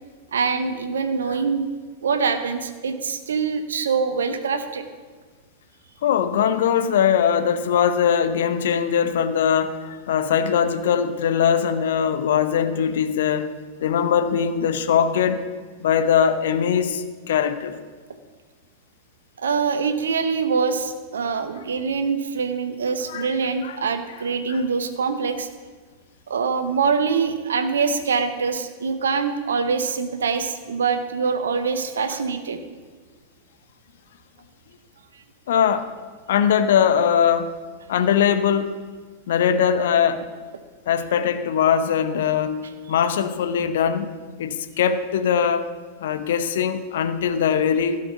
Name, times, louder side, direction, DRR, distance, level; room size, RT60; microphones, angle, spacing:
voice 1, 0.3-1.6 2.0-4.8 19.4-25.5 26.3-32.6, right 5 dB, 65° right, 9 dB, 1.0 m, -24 dB
voice 2, 6.0-13.5 13.8-15.4 15.8-17.7 23.1-23.3 23.6-23.8 24.5-24.6 35.5-35.9 36.3-37.5 37.9-38.8 39.3-40.2 40.9-42.6 42.9-45.7 46.0-48.0, left 8 dB, 60° left, 10 dB, 0.8 m, -21 dB
15.5 x 6.5 x 5.9 m, 1.5 s
figure-of-eight pair, 90°, 0 cm